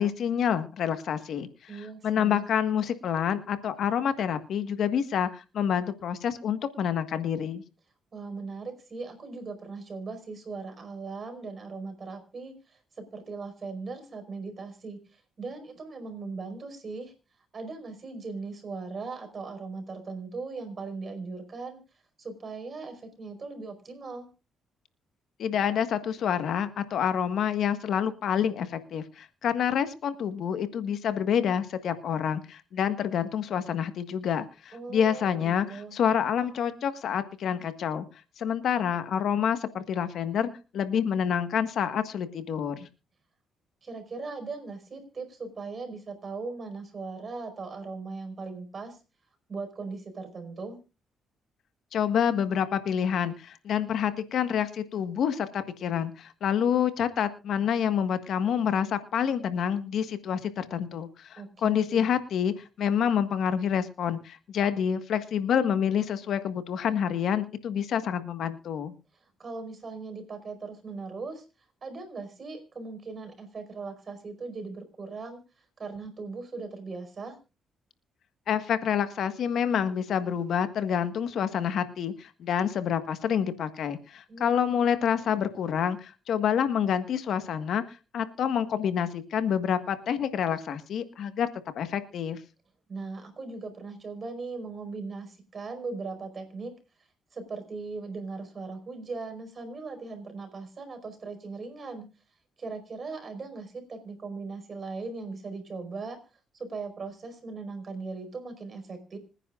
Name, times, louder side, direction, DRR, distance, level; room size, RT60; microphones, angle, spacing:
voice 1, 0.0-1.7 2.0-7.6 25.4-38.1 38.4-42.9 51.9-68.9 78.5-91.5 91.7-92.4, left 8 dB, 70° left, 10 dB, 1.5 m, -28 dB
voice 2, 1.7-2.5 8.1-17.1 17.5-21.8 22.2-24.3 34.7-36.0 43.8-49.0 49.5-50.8 61.4-62.1 69.4-71.4 71.8-75.4 75.8-77.3 84.3-85.3 92.9-96.7 97.3-102.1 102.6-106.2 106.5-109.2, right 4 dB, 40° right, 7 dB, 5.0 m, -39 dB
26.0 x 9.9 x 2.5 m, 0.31 s
cardioid pair, 90°, 0 cm